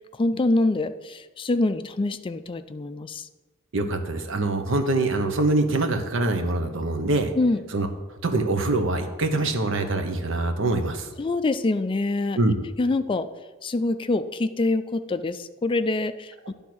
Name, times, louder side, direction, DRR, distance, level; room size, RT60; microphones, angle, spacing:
voice 1, 0.1-3.3 7.3-7.6 11.2-12.4 12.8-13.3 13.6-16.5, left 2 dB, 25° left, 10 dB, 0.3 m, -25 dB
voice 2, 3.7-7.3 7.7-7.9 8.2-11.1 12.4-12.6, right 2 dB, 65° right, 6 dB, 0.9 m, -24 dB
10.5 x 3.5 x 6.1 m, 1.2 s
head